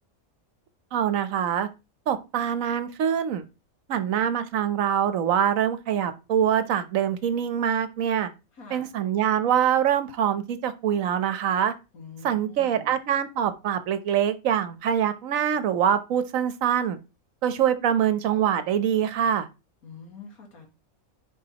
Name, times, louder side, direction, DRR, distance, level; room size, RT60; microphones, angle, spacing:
voice 1, 0.9-1.7 2.1-3.4 3.9-8.3 8.7-11.7 12.2-17.0 17.4-19.5, right 9 dB, 70° right, 1.1 m, -24 dB
voice 2, 8.5-9.0 11.9-13.0 19.8-20.7, left 4 dB, 85° left, 2.3 m, -45 dB
10.0 x 4.4 x 2.9 m
omnidirectional pair, 1.5 m